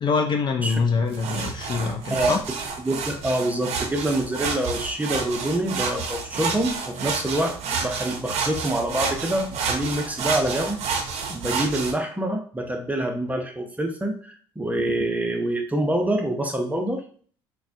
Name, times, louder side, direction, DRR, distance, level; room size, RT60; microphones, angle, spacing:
voice 1, 0.0-2.4, left 5 dB, 40° left, 4 dB, 0.5 m, -24 dB
sound 1, 1.1-11.9, right 5 dB, 60° right, 0.7 m, -29 dB
voice 2, 2.8-10.8 11.3-17.0, right 1 dB, 10° right, 3 dB, 0.8 m, -26 dB
3.9 x 2.3 x 2.7 m, 0.44 s
hypercardioid pair, 65°, 12 cm